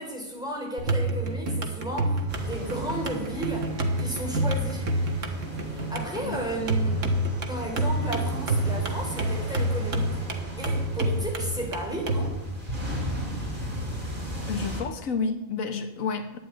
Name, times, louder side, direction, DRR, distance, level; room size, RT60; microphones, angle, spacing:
voice 1, 0.0-4.9 5.5-7.0 7.4-10.2 10.6-12.3, right 1 dB, 5° right, -1 dB, 4.2 m, -34 dB
sound 1, 0.8-12.3, right 1 dB, 70° right, 1.8 m, -28 dB
sound 2, 2.3-14.8, equal, 40° right, 3.6 m, -36 dB
voice 2, 14.5-16.4, left 5 dB, 90° left, 7 dB, 1.6 m, -30 dB
11.5 x 9.3 x 9.5 m, 0.95 s
omnidirectional pair, 1.4 m